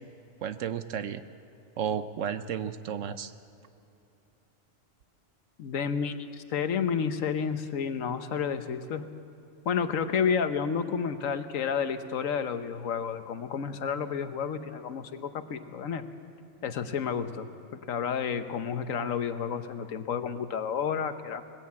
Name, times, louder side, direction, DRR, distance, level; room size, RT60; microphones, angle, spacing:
voice 1, 0.4-1.2 1.8-3.3, right 8 dB, 75° right, 12 dB, 1.1 m, -32 dB
voice 2, 5.6-9.1 9.6-16.0 16.6-21.4, left 7 dB, 85° left, 10 dB, 1.4 m, -31 dB
20.5 x 15.0 x 8.6 m, 2.7 s
omnidirectional pair, 1.3 m